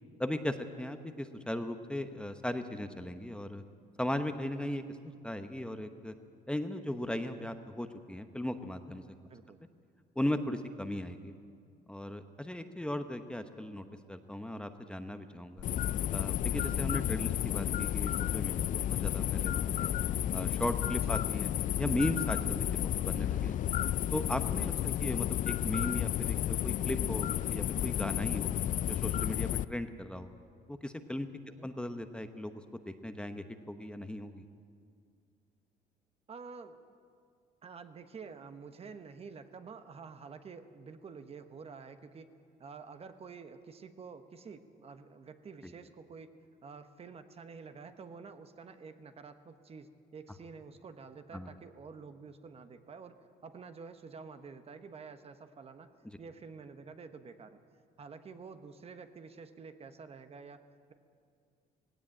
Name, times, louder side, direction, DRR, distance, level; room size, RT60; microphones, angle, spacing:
voice 1, 0.2-3.6 4.0-6.1 6.5-9.0 10.2-11.3 11.9-15.6 16.1-19.9 20.3-21.5 21.8-23.6 24.1-28.5 28.9-30.3 30.7-31.3 31.6-34.4 45.6-45.7 51.3-51.5 56.0-56.2, left 1 dB, 5° left, 8 dB, 0.9 m, -37 dB
sound 1, 15.6-29.7, left 11 dB, 50° left, 0.4 m, -32 dB
voice 2, 36.3-36.8 37.6-42.3 42.6-46.3 46.6-55.9 56.2-57.6 58.0-60.9, right 5 dB, 35° right, 9 dB, 1.1 m, -49 dB
17.5 x 17.0 x 8.9 m, 2.2 s
cardioid pair, 110°, 17 cm